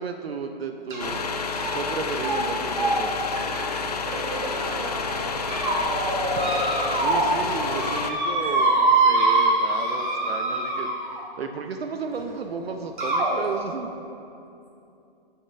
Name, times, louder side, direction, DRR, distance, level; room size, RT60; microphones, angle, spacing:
voice 1, 0.0-3.1 6.9-13.9, right 5 dB, 80° right, 5 dB, 0.7 m, -33 dB
sound 1, 0.9-1.2 1.5-1.9 2.2-2.4 2.7-4.7 5.2-5.8 6.3-7.3 7.6-11.2 12.2-12.3 13.0-13.3, right 2 dB, 50° right, 2.1 m, -24 dB
sound 2, 1.0-8.1, left 5 dB, 40° left, 0.4 m, -30 dB
voice 2, 3.3-7.1 8.4-8.8, right 2 dB, 30° right, -3 dB, 1.5 m, -38 dB
sound 3, 3.4-8.8, equal, 10° right, 2.2 m, -34 dB
6.6 x 5.8 x 6.6 m, 2.7 s
hypercardioid pair, 170°, 30 cm